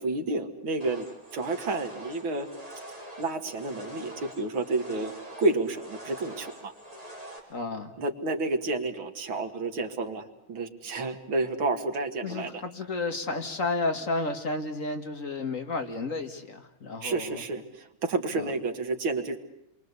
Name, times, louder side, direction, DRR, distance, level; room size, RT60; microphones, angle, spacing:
voice 1, 0.0-2.5 3.2-6.7 8.0-12.6 17.0-19.4, right 3 dB, 90° right, 2.7 m, -30 dB
sound 1, 0.8-7.4, right 1 dB, 15° right, 4.8 m, -44 dB
voice 2, 7.5-7.9 12.2-17.4 18.3-18.4, left 3 dB, 40° left, 2.1 m, -32 dB
29.5 x 23.5 x 8.3 m
omnidirectional pair, 2.2 m